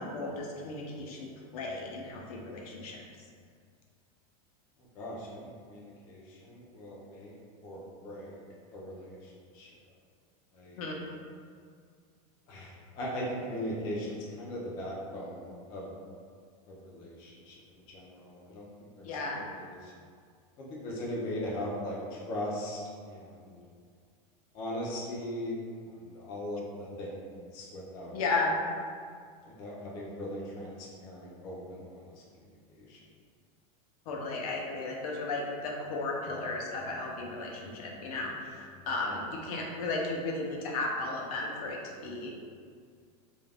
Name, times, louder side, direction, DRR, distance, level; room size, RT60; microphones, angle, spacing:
voice 1, 0.0-3.0 10.8-11.1 19.0-19.4 28.1-28.6 34.1-42.3, left 3 dB, 75° left, -1 dB, 0.5 m, -34 dB
voice 2, 5.0-7.3 7.6-8.4 8.7-9.7 10.5-10.8 12.5-15.9 16.7-18.6 19.0-19.9 20.6-22.8 23.1-23.6 24.5-25.6 25.9-27.2 27.5-28.2 29.6-32.1 32.7-33.0 38.8-39.2, equal, 25° left, -5 dB, 0.3 m, -39 dB
2.4 x 2.1 x 3.2 m, 2.1 s
supercardioid pair, 175°, 19 cm